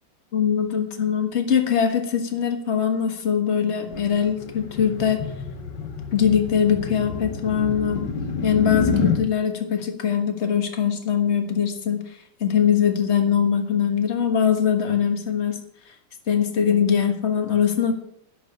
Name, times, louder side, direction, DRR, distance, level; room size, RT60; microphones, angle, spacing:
voice 1, 0.3-5.2 6.1-8.1 8.4-12.0 12.4-15.6 16.3-17.9, left 8 dB, 40° left, 6 dB, 1.6 m, -22 dB
sound 1, 3.9-9.2, left 5 dB, 80° left, 2.1 m, -28 dB
10.5 x 7.0 x 7.3 m, 0.72 s
omnidirectional pair, 2.0 m